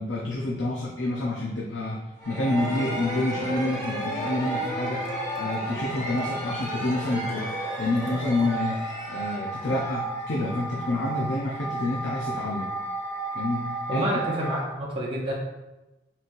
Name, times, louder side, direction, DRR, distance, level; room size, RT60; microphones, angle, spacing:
voice 1, 0.0-12.7 13.3-14.2, left 2 dB, 85° left, -4 dB, 0.7 m, -28 dB
sound 1, 2.2-10.9, left 1 dB, 40° left, 1.0 m, -35 dB
sound 2, 2.2-14.6, right 3 dB, 10° left, 0.8 m, -34 dB
sound 3, 2.6-8.5, right 2 dB, 70° right, 0.8 m, -44 dB
voice 2, 13.9-15.3, right 1 dB, 30° right, -3 dB, 0.6 m, -28 dB
4.2 x 3.9 x 2.6 m, 1.0 s
head